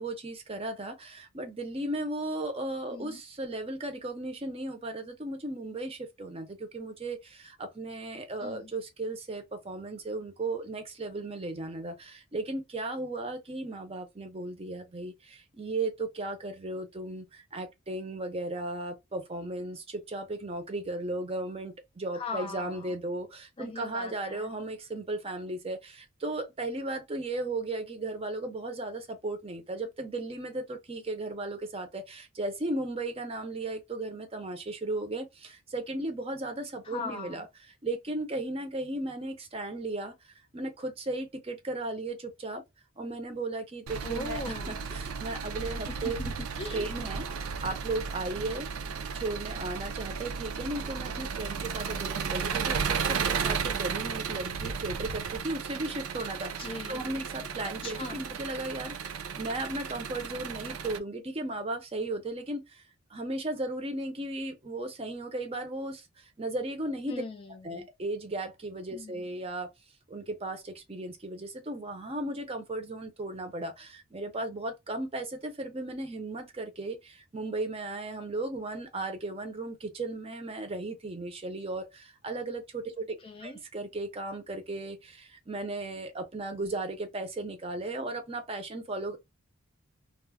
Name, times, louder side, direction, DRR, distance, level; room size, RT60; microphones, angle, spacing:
voice 1, 0.0-37.5 37.8-42.6 43.0-46.2 46.7-48.7 49.1-62.8 63.1-67.2 67.6-69.7 70.1-83.1 83.4-89.2, right 2 dB, 25° right, 0.5 m, -36 dB
voice 2, 8.4-8.7 22.1-23.0 23.6-24.5 36.8-37.5 44.0-44.8 45.9-46.9 56.6-57.1 57.6-58.3 67.1-67.9 68.9-69.3 83.2-83.6, left 3 dB, 25° left, 0.3 m, -40 dB
Engine, 43.9-61.0, right 6 dB, 80° right, 0.4 m, -34 dB
2.3 x 2.0 x 3.3 m
head